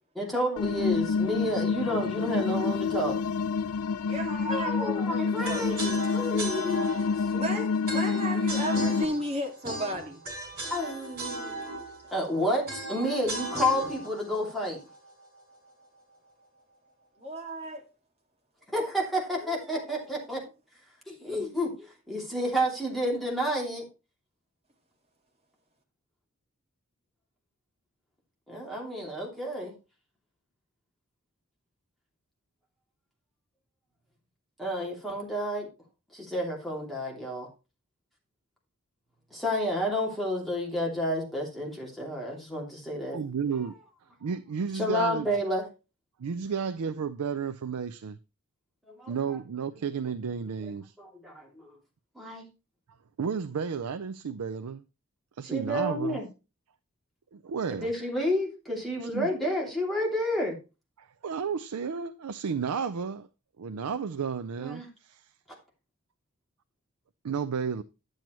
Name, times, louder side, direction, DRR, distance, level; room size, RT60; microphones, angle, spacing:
voice 1, 0.1-3.2 4.5-7.5 10.7-11.7 12.1-14.8 18.7-20.4 21.1-23.8 28.5-29.7 34.6-35.7 36.1-37.5 39.3-43.2 44.7-45.6 48.9-49.4 50.6-50.7 51.0-51.8 52.1-52.4 55.4-56.3 57.7-60.6 64.6-64.9, equal, ahead, 2.8 m, -30 dB
sound 1, 0.6-9.0, left 5 dB, 70° left, 0.4 m, -28 dB
voice 2, 4.1-5.7 7.3-10.2 17.2-17.8 21.2-21.3, equal, 30° right, 2.1 m, -34 dB
sound 2, 5.4-15.5, right 2 dB, 45° right, 4.5 m, -37 dB
voice 3, 43.1-43.7 44.2-45.3 46.2-48.2 49.1-50.9 53.2-54.8 55.4-56.2 57.3-57.9 59.0-59.3 61.0-63.3 63.6-65.3 67.2-67.8, right 6 dB, 80° right, 0.5 m, -32 dB
10.5 x 7.7 x 3.0 m
head